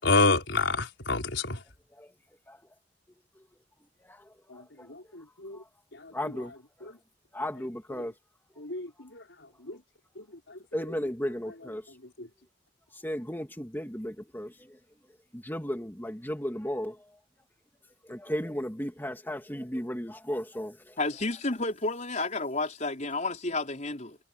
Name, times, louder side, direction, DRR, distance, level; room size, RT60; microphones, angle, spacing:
voice 1, 0.0-1.6 4.5-4.6 4.9-5.6 5.9-6.1 8.6-9.2 9.6-9.8 10.2-10.6 12.2-12.3, left 3 dB, 80° left, 4.7 m, -28 dB
voice 2, 4.0-4.9 5.5-5.7 6.1-6.5 6.8-6.9 7.3-8.1 10.7-12.0 12.9-14.8 15.3-17.2 18.0-21.0, equal, 10° left, 2.8 m, -35 dB
voice 3, 21.0-24.2, left 2 dB, 40° left, 4.8 m, -31 dB
head